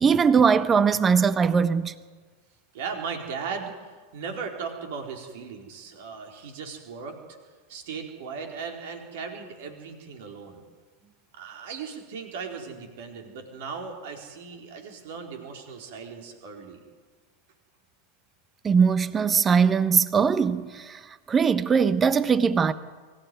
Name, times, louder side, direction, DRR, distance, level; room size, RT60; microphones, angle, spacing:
voice 1, 0.0-1.9 18.6-21.0 21.3-22.7, right 6 dB, 20° right, 1.1 m, -21 dB
voice 2, 2.7-7.2 7.7-10.6 11.3-16.8, right 5 dB, 55° right, 4.3 m, -37 dB
24.5 x 15.5 x 9.3 m
figure-of-eight pair, 90°, 0 cm